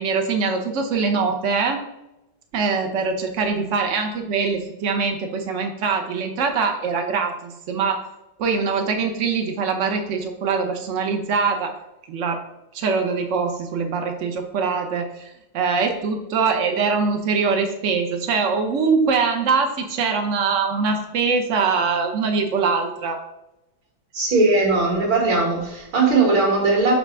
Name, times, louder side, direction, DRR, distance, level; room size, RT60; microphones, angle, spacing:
voice 1, 0.0-1.8 2.5-8.0 8.4-11.7 12.1-12.4 12.7-23.2, right 5 dB, 85° right, 4 dB, 0.6 m, -23 dB
voice 2, 24.1-27.0, right 3 dB, 70° right, -2 dB, 2.6 m, -19 dB
6.6 x 3.4 x 5.9 m, 0.90 s
omnidirectional pair, 2.3 m